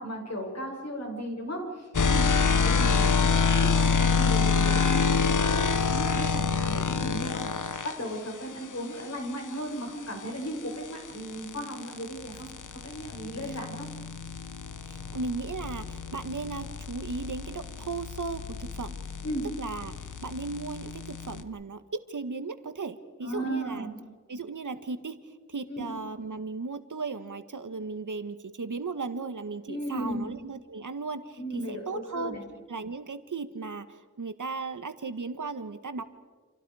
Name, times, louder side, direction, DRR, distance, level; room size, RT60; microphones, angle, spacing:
voice 1, 0.0-12.5 12.8-13.9 19.2-19.5 23.2-23.9 25.7-25.8 29.7-30.3 31.4-32.4, equal, 60° left, 1 dB, 6.5 m, -36 dB
sound 1, 1.9-7.9 10.4-21.4, left 5 dB, 80° left, 1.2 m, -27 dB
voice 2, 2.7-3.1 13.4-13.6 14.9-18.9 19.6-23.9 24.3-32.4 32.7-36.0, right 4 dB, 85° right, 10 dB, 1.6 m, -36 dB
29.5 x 28.0 x 5.0 m, 1.4 s
wide cardioid pair, 80°, 30 cm